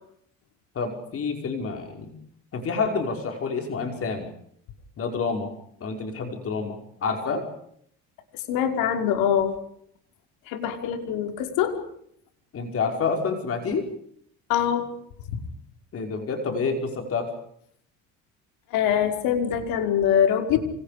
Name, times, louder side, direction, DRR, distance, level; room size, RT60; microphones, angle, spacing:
voice 1, 0.7-2.1 2.5-4.3 5.0-5.5 5.8-7.4 12.5-13.9 15.9-17.3, left 4 dB, 40° left, 4 dB, 5.5 m, -28 dB
voice 2, 8.5-9.5 10.5-11.8 14.5-14.9 18.7-20.6, left 9 dB, 85° left, 5 dB, 5.4 m, -23 dB
29.0 x 28.5 x 5.2 m, 0.69 s
cardioid pair, 120°, 33 cm